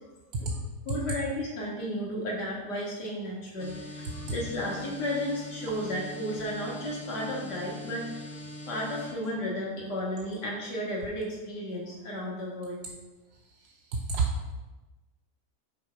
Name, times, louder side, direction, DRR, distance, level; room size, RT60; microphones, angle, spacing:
voice 1, 0.9-8.2 8.7-12.8, equal, 85° left, -4 dB, 2.3 m, -33 dB
sound 1, 3.6-9.1, left 1 dB, 40° left, 1.8 m, -42 dB
voice 2, 13.5-14.5, right 4 dB, 75° right, -2 dB, 1.2 m, -30 dB
6.4 x 4.2 x 4.6 m, 1.1 s
omnidirectional pair, 1.8 m